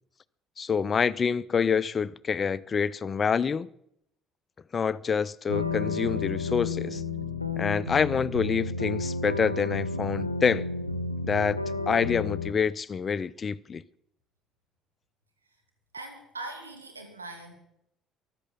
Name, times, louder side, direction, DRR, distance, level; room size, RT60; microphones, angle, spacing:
voice 1, 0.6-3.7 4.7-7.0 7.6-10.7 11.2-11.6 11.9-13.8, left 6 dB, 35° left, 0.5 m, -27 dB
sound 1, 5.5-12.5, left 3 dB, 90° left, 0.7 m, -31 dB
voice 2, 15.9-17.5, right 2 dB, 85° right, 2.4 m, -41 dB
14.5 x 11.5 x 7.1 m
figure-of-eight pair, 50°, 0 cm